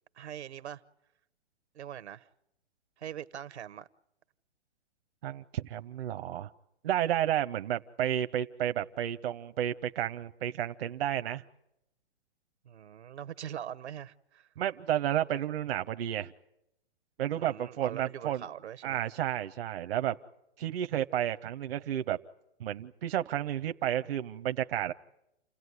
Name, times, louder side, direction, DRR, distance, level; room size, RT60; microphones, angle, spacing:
voice 1, 0.2-0.8 1.7-2.3 3.0-3.9 12.6-14.5 17.3-19.0, right 10 dB, 80° right, 1.1 m, -42 dB
voice 2, 5.2-6.5 6.8-11.4 14.6-16.3 17.2-18.4 18.8-20.2 20.6-22.2 22.6-24.9, right 11 dB, 60° right, 0.8 m, -31 dB
29.0 x 17.0 x 9.6 m
hypercardioid pair, 140°, 33 cm